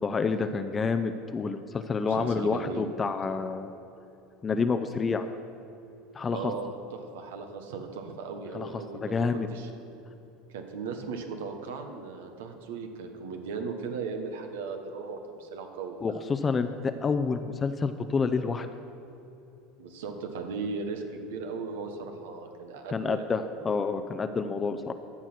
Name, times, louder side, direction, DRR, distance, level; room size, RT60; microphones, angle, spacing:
voice 1, 0.0-3.7 4.4-5.3 6.1-6.5 8.5-9.5 16.0-18.7 22.9-24.9, left 4 dB, 25° left, 9 dB, 0.5 m, -28 dB
voice 2, 2.1-2.9 6.3-9.7 10.5-16.2 19.8-23.3, right 4 dB, 85° right, 5 dB, 1.2 m, -37 dB
14.0 x 6.2 x 6.0 m, 3.0 s
supercardioid pair, 100°, 0 cm